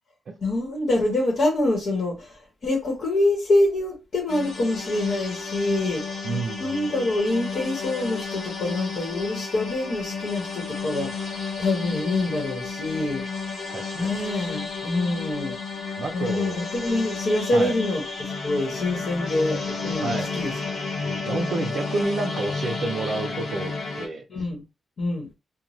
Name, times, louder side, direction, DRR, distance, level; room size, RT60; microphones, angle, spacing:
voice 1, 0.4-6.2 6.6-13.2 13.9-15.6 16.1-20.5 21.0-21.2 24.3-24.6 25.0-25.3, left 2 dB, 60° left, 1.1 m, -26 dB
sound 1, 4.3-24.1, left 4 dB, 85° left, 1.0 m, -32 dB
voice 2, 6.2-6.9 13.7-14.2 16.0-16.6 17.5-17.7 20.0-20.3 21.2-24.2, right 3 dB, 55° right, 0.4 m, -29 dB
2.5 x 2.1 x 3.1 m
wide cardioid pair, 150°, 0 cm